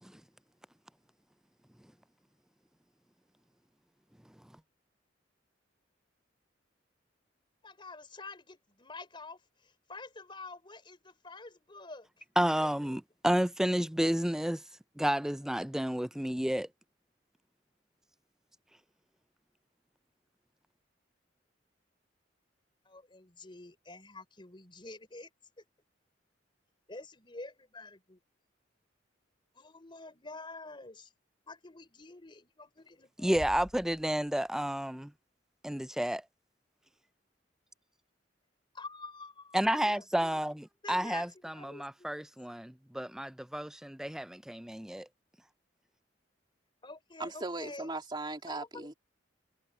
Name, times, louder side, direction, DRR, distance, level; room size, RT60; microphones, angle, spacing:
voice 1, 7.6-12.2 12.6-13.0 22.8-25.3 25.6-25.7 26.9-28.2 29.5-31.1 31.5-33.4 38.7-40.1 40.8-42.3 46.8-47.9 48.5-48.9, left 3 dB, 25° left, 4.1 m, -48 dB
voice 2, 12.4-14.6 15.0-16.7 33.2-35.1 35.6-36.2 39.5-45.1, right 1 dB, 5° right, 0.3 m, -31 dB
Bass drum, 33.3-34.8, left 1 dB, 50° left, 1.7 m, -48 dB
voice 3, 47.2-48.9, right 2 dB, 25° right, 3.1 m, -38 dB
head